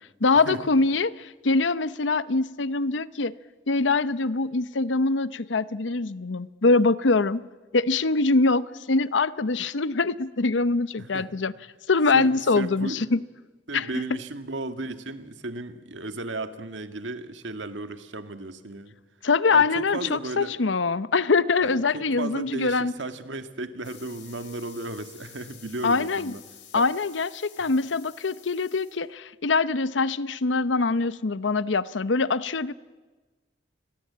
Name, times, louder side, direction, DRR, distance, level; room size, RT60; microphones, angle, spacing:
voice 1, 0.2-3.3 3.7-7.4 7.7-11.5 11.9-13.2 13.7-13.9 19.2-22.9 25.8-26.3 26.7-32.7, left 3 dB, 90° left, 16 dB, 0.8 m, -23 dB
voice 2, 11.0-11.5 12.1-13.2 13.7-19.0 19.5-20.6 21.6-26.4 26.7-26.9, right 2 dB, 90° right, 9 dB, 1.8 m, -35 dB
sound 1, 23.8-29.0, left 9 dB, 70° left, 4.8 m, -50 dB
29.0 x 21.5 x 8.6 m, 1.3 s
head